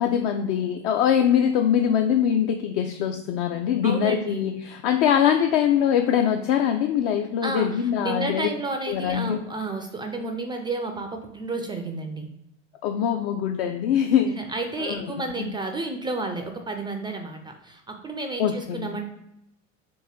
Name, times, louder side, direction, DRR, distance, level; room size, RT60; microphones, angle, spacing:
voice 1, 0.0-8.5 8.9-9.4 12.8-14.4 14.8-15.1 15.4-15.5 18.4-18.9, left 9 dB, 50° left, 5 dB, 0.5 m, -23 dB
voice 2, 3.8-4.5 7.4-12.3 14.2-19.0, right 2 dB, 15° right, 4 dB, 0.3 m, -31 dB
3.7 x 2.7 x 4.3 m, 0.84 s
figure-of-eight pair, 65°, 39 cm